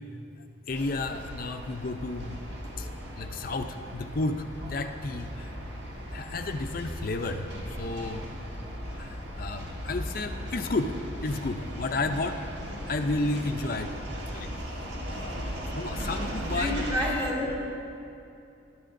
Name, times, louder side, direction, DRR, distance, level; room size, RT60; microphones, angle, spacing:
voice 1, 0.7-2.4 2.8-2.9 3.2-5.5 6.1-7.5 7.8-8.3 8.9-12.4 12.9-14.0 14.3-14.5 14.8-15.5 15.7-16.9, left 2 dB, 45° left, 6 dB, 0.5 m, -32 dB
sound 1, 0.7-17.0, equal, 65° right, 1.4 m, -37 dB
voice 2, 16.2-17.5, left 1 dB, 25° right, -3 dB, 1.9 m, -30 dB
19.5 x 11.0 x 2.6 m, 2.6 s
head